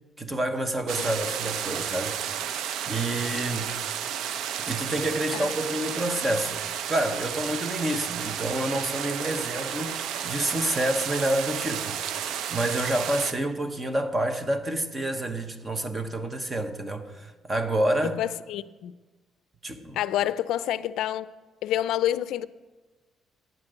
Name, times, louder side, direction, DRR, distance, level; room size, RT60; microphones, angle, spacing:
voice 1, 0.2-2.6 2.8-3.7 4.6-12.2 12.5-18.2 19.6-20.0, right 1 dB, 20° right, 0.8 m, -28 dB
sound 1, 0.9-13.3, right 9 dB, 75° right, 0.5 m, -32 dB
voice 2, 18.0-18.9 19.9-21.3 21.6-22.5, left 12 dB, 80° left, 0.4 m, -28 dB
9.7 x 9.0 x 7.9 m
cardioid pair, 165°, 0 cm